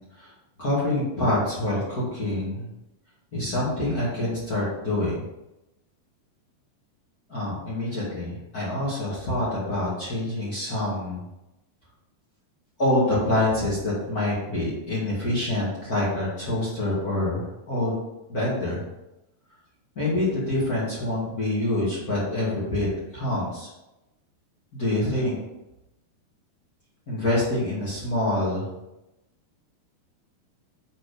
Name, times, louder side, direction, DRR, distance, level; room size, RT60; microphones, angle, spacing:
voice 1, 0.6-2.7 3.3-5.2 7.3-11.2 12.8-18.0 18.3-18.8 19.9-22.9 23.1-23.7 24.7-25.4 27.1-28.7, left 1 dB, 40° left, -8 dB, 1.3 m, -26 dB
7.6 x 4.3 x 5.0 m, 0.94 s
omnidirectional pair, 5.1 m